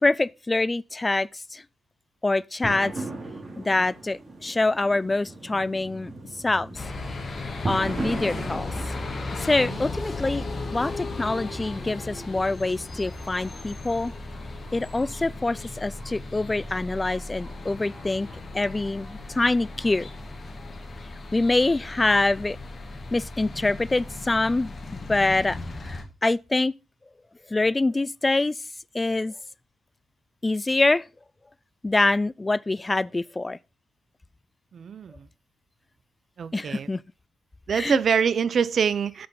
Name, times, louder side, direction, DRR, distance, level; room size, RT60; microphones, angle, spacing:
voice 1, 0.0-1.6 2.2-2.9 3.6-6.1 6.4-6.8 7.7-8.7 9.4-10.4 10.7-14.1 14.7-18.3 18.5-20.1 21.3-22.6 23.1-24.7 25.1-26.7 27.5-28.6 28.9-29.4 30.4-31.1 31.8-33.6 36.5-37.0 37.7-38.0, left 2 dB, 25° left, 0.3 m, -25 dB
sound 1, 2.6-20.6, right 2 dB, 30° right, 3.1 m, -40 dB
sound 2, 6.7-26.0, left 3 dB, 40° left, 2.3 m, -36 dB
voice 2, 34.7-35.3 36.4-36.9 37.7-39.3, right 7 dB, 60° right, 0.5 m, -25 dB
7.7 x 5.8 x 5.3 m
supercardioid pair, 55°, 0 cm